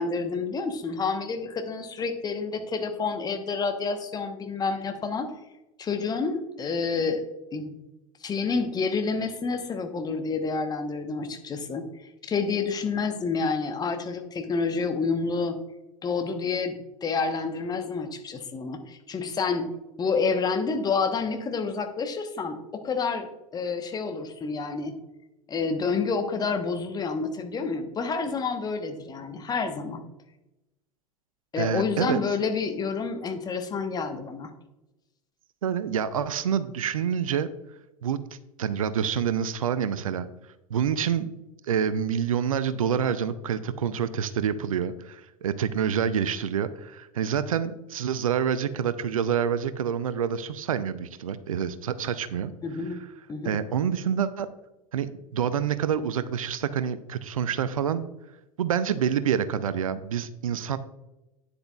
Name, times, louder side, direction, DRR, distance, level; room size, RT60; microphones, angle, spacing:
voice 1, 0.0-5.3 5.8-7.2 7.5-7.8 8.2-11.9 12.2-15.6 16.0-19.7 20.0-24.9 25.5-30.0 31.5-34.5 52.6-53.0 53.3-53.6, left 4 dB, 20° left, 6 dB, 1.1 m, -29 dB
voice 2, 31.6-32.2 35.6-37.5 38.0-38.2 38.6-40.3 40.7-41.3 41.7-52.5 53.4-54.5 54.9-58.1 58.6-60.8, right 8 dB, 65° right, 14 dB, 0.6 m, -27 dB
11.5 x 9.8 x 2.4 m, 0.96 s
figure-of-eight pair, 85°, 19 cm